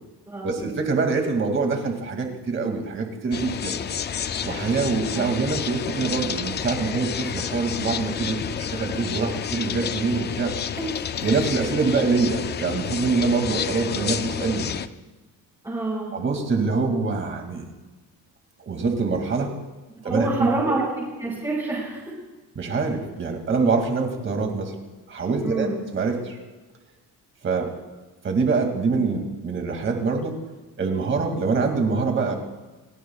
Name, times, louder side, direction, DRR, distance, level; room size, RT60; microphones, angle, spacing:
voice 1, 0.4-3.7 4.4-10.5 11.2-14.7 16.1-17.6 18.7-19.5 20.0-20.7 22.6-24.7 25.1-26.4 27.4-27.7 28.2-30.3 30.8-32.3, right 4 dB, 30° right, 3 dB, 2.4 m, -25 dB
sound 1, 3.3-14.9, left 8 dB, 30° left, 0.4 m, -30 dB
voice 2, 10.8-11.3 15.6-16.1 20.0-22.0 25.4-25.8, right 2 dB, 10° right, -8 dB, 5.4 m, -27 dB
29.0 x 17.0 x 2.4 m, 1.2 s
cardioid pair, 180°, 37 cm